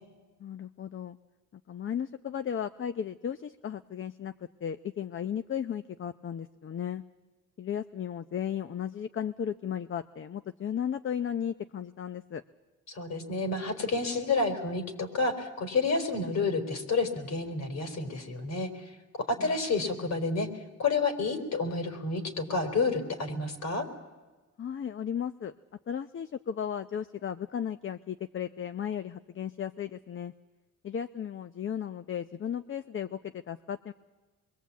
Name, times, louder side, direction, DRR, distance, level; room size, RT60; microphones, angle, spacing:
voice 1, 0.4-1.2 1.7-4.3 4.6-7.0 7.6-12.4 19.4-19.5 24.6-25.5 25.9-30.3 30.8-33.9, left 8 dB, 40° left, 11 dB, 0.8 m, -35 dB
voice 2, 12.9-20.5 20.8-23.9, left 3 dB, 60° left, 8 dB, 4.1 m, -30 dB
26.0 x 22.0 x 8.4 m, 1.3 s
cardioid pair, 90°, 30 cm